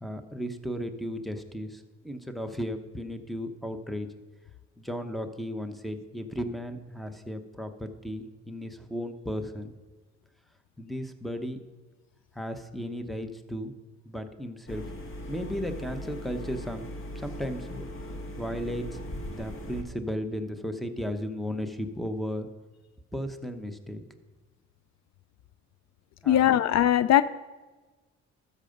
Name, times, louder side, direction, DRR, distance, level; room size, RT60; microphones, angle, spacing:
voice 1, 0.0-4.1 4.8-9.7 10.8-11.6 12.3-13.7 14.0-15.0 15.3-19.0 19.3-22.5 23.1-24.0 26.2-26.6, equal, ahead, 8 dB, 1.0 m, -35 dB
sound 1, 14.7-19.8, equal, 45° left, 1.8 m, -39 dB
voice 2, 26.3-27.2, left 11 dB, 60° left, 14 dB, 0.5 m, -20 dB
13.0 x 6.8 x 5.3 m, 1.2 s
cardioid pair, 90°, 30 cm